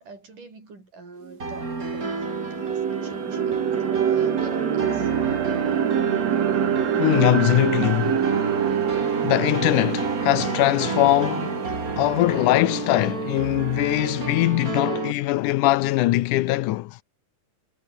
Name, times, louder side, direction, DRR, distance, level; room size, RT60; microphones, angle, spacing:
voice 1, 0.0-5.1 14.7-14.8, right 3 dB, 85° right, 9.3 m, -45 dB
sound 1, 1.3-1.4 1.8-13.8, right 9 dB, 60° right, 2.9 m, -26 dB
sound 2, 1.4-15.1, right 3 dB, 25° right, 4.0 m, -31 dB
voice 2, 7.0-8.2 9.2-11.6 12.0-17.0, left 17 dB, 85° left, 2.3 m, -21 dB
omnidirectional pair, 3.6 m